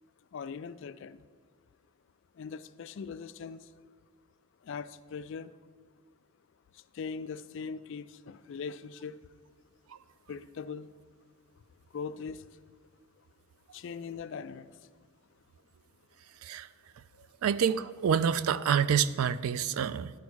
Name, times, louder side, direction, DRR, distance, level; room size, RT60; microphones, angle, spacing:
voice 1, 0.3-1.2 2.4-3.6 4.7-5.5 6.9-9.1 10.3-10.9 11.9-12.4 13.7-14.7, left 5 dB, 55° left, 14 dB, 0.3 m, -40 dB
voice 2, 17.4-20.1, right 7 dB, 75° right, 16 dB, 0.3 m, -27 dB
10.5 x 4.6 x 6.2 m, 1.6 s
head